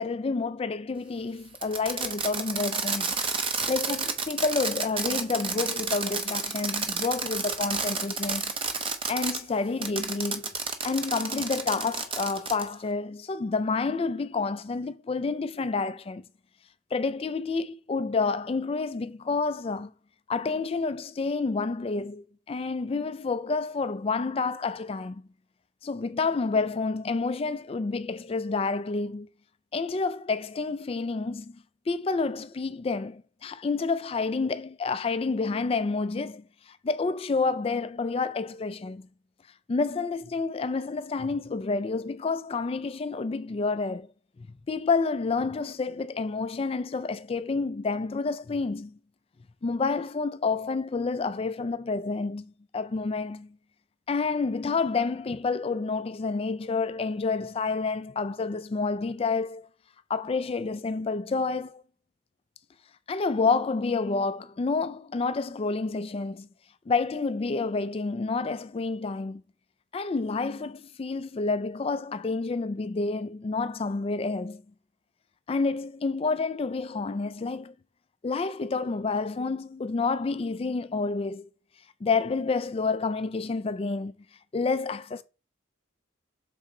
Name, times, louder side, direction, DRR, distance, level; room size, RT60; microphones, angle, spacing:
voice 1, 0.0-3.1 3.5-8.5 9.1-10.5 10.8-16.2 16.9-19.9 20.3-25.2 25.8-29.3 29.7-39.0 39.7-44.1 44.4-49.0 49.6-53.6 54.1-59.7 60.1-61.8 63.1-66.5 66.9-69.4 69.9-74.6 75.5-77.7 78.2-81.5 82.0-84.1 84.5-85.2, left 4 dB, 30° left, 0.3 m, -29 dB
Fireworks, 1.6-9.4 9.8-12.7, right 5 dB, 25° right, 0.6 m, -30 dB
6.1 x 4.2 x 3.7 m
head